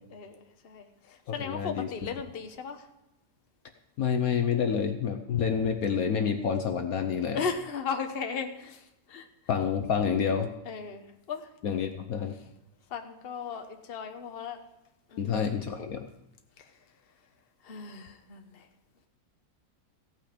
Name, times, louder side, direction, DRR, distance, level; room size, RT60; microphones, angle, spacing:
voice 1, 0.1-2.8 7.3-8.8 9.1-9.3 10.7-11.5 12.9-14.6 15.1-15.3 17.6-18.7, left 5 dB, 40° left, 6 dB, 1.2 m, -36 dB
voice 2, 1.4-1.9 4.0-7.4 9.5-10.5 11.6-12.3 15.2-16.1, left 7 dB, 65° left, 6 dB, 1.2 m, -28 dB
16.5 x 8.9 x 5.1 m, 0.90 s
omnidirectional pair, 1.8 m